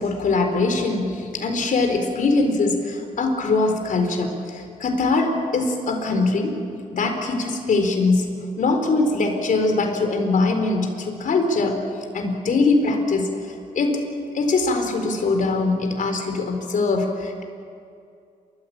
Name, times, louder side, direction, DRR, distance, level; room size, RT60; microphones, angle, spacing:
voice 1, 0.0-6.6 6.9-11.8 12.1-13.3 13.7-14.0 14.3-17.4, left 3 dB, 65° left, 4 dB, 4.3 m, -22 dB
29.0 x 15.0 x 8.7 m, 2.4 s
cardioid pair, 70°, 15 cm